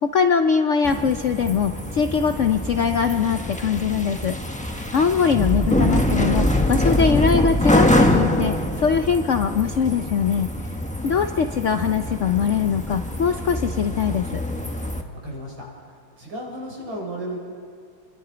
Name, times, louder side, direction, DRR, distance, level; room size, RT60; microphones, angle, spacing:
voice 1, 0.0-4.3 4.9-10.5 11.0-14.4, left 6 dB, 70° left, 7 dB, 0.7 m, -22 dB
sound 1, 0.8-15.0, left 1 dB, 5° left, 1.1 m, -24 dB
voice 2, 15.2-15.5 16.2-17.4, right 1 dB, 90° right, -2 dB, 6.6 m, -33 dB
29.0 x 22.5 x 5.1 m, 2.2 s
omnidirectional pair, 2.1 m